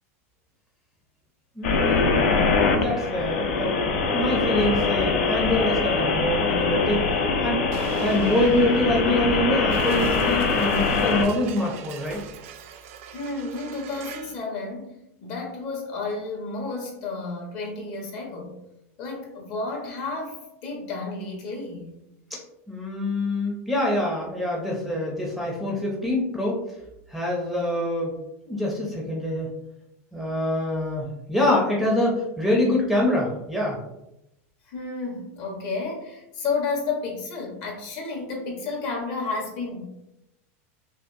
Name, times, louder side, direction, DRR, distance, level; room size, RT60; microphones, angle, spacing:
sound 1, 1.6-11.2, left 4 dB, 65° left, 0.7 m, -23 dB
voice 1, 1.6-2.2 2.7-3.8 4.1-7.2 7.4-7.7 8.0-12.3 22.3-22.4 22.7-26.6 27.1-28.2 28.5-29.5 30.1-33.8, left 1 dB, ahead, -3 dB, 0.6 m, -25 dB
Explosion, 7.7-14.4, right 7 dB, 65° right, 0.4 m, -38 dB
voice 2, 13.1-18.5 19.0-22.0 34.7-39.8, left 3 dB, 50° left, 0 dB, 1.2 m, -31 dB
5.5 x 2.1 x 2.6 m, 0.87 s
supercardioid pair, 150°, 8 cm